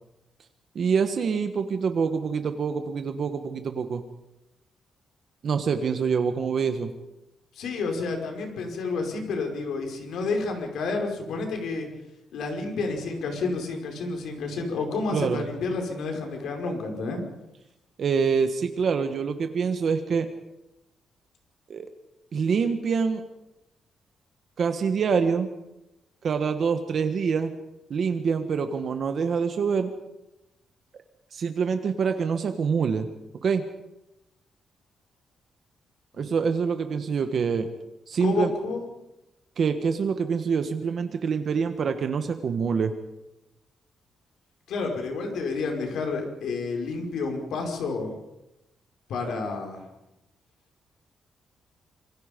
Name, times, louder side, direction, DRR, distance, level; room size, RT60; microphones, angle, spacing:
voice 1, 0.7-4.0 5.4-6.9 15.1-15.4 18.0-20.3 21.7-21.9 22.3-23.2 24.6-25.5 26.2-27.5 27.9-29.9 31.3-33.1 33.4-33.6 36.2-37.7 38.1-38.5 39.6-42.9, right 6 dB, 45° right, 7 dB, 1.4 m, -25 dB
voice 2, 7.6-11.9 12.3-17.2 36.1-36.3 38.2-38.9 44.7-48.2 49.1-49.8, left 3 dB, 70° left, 3 dB, 5.4 m, -30 dB
27.0 x 24.5 x 5.3 m, 0.92 s
cardioid pair, 170°, 0 cm